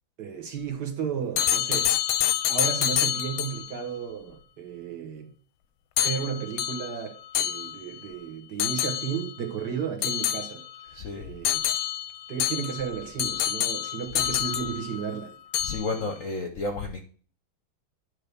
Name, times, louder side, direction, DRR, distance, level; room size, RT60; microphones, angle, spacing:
voice 1, 0.2-5.3 6.0-11.6 12.3-15.3 15.9-16.0, right 7 dB, 55° right, 1.9 m, -34 dB
sound 1, 1.4-3.7 6.0-8.1 8.6-9.4 10.0-10.9 11.4-15.2 15.5-16.1, left 11 dB, 90° left, 1.5 m, -28 dB
voice 2, 10.9-11.3 15.6-17.0, left 3 dB, 55° left, 0.9 m, -32 dB
9.5 x 3.2 x 6.7 m
omnidirectional pair, 2.2 m